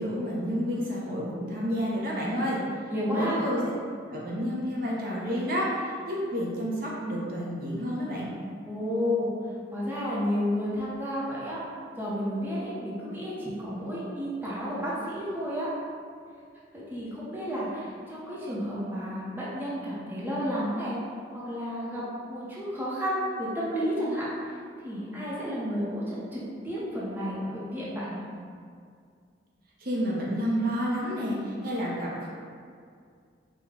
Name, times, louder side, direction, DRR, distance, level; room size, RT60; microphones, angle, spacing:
voice 1, 0.0-2.6 3.1-3.6 4.1-8.3 29.8-32.3, equal, 50° right, -5 dB, 0.7 m, -30 dB
voice 2, 2.9-3.4 8.7-9.3 9.7-11.6 12.0-15.7 16.7-21.0 21.3-24.6 24.8-28.2, equal, 10° right, -8 dB, 0.8 m, -31 dB
5.0 x 2.2 x 3.6 m, 2.2 s
head